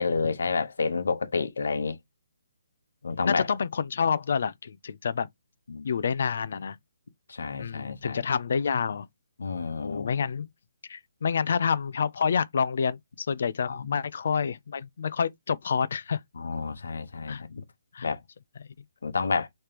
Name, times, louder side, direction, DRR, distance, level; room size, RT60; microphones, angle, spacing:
voice 1, 0.0-2.0 3.0-3.5 5.7-5.9 7.3-8.2 9.4-10.2 13.6-14.0 16.4-17.6 18.0-18.2 19.0-19.5, left 4 dB, 75° left, 1.0 m, -29 dB
voice 2, 3.2-5.3 5.8-6.8 7.6-9.1 9.8-10.5 10.9-16.2 17.3-17.4 17.9-18.1, left 6 dB, 55° left, 0.4 m, -28 dB
5.0 x 3.2 x 3.0 m
hypercardioid pair, 165°, 0 cm